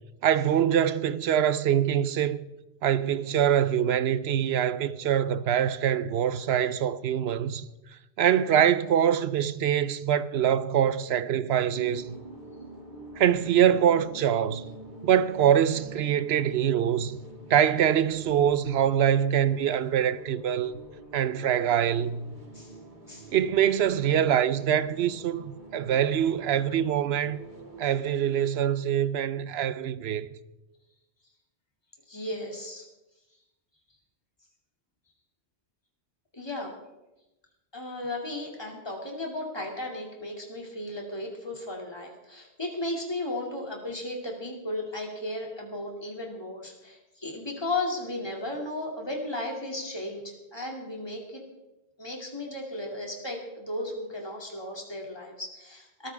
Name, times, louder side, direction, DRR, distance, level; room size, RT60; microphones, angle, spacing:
voice 1, 0.2-2.4 2.8-7.6 8.2-12.2 13.2-14.6 15.0-17.2 17.5-20.8 21.1-22.3 23.3-27.4 27.8-30.3, right 9 dB, 70° right, 0.9 m, -24 dB
sound 1, 11.7-27.9, right 1 dB, 45° right, 2.4 m, -47 dB
voice 2, 32.1-32.9 36.3-36.7 37.7-51.4 52.0-56.1, left 1 dB, 25° left, 2.7 m, -35 dB
21.0 x 13.5 x 3.5 m
omnidirectional pair, 1.1 m